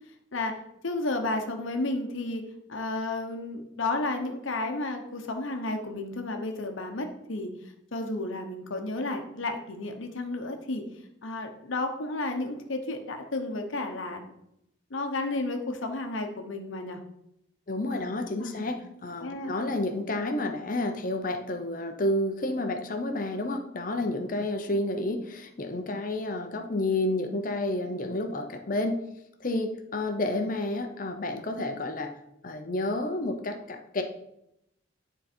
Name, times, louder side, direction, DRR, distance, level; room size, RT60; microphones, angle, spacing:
voice 1, 0.8-2.4 2.7-7.5 7.9-10.8 11.2-14.2 14.9-17.0 17.9-18.1 18.4-18.7 19.2-19.5, left 2 dB, 75° left, 5 dB, 0.9 m, -32 dB
voice 2, 17.7-29.0 29.4-32.1 32.4-34.0, left 2 dB, 40° left, 6 dB, 0.7 m, -30 dB
9.7 x 4.0 x 4.3 m, 0.80 s
head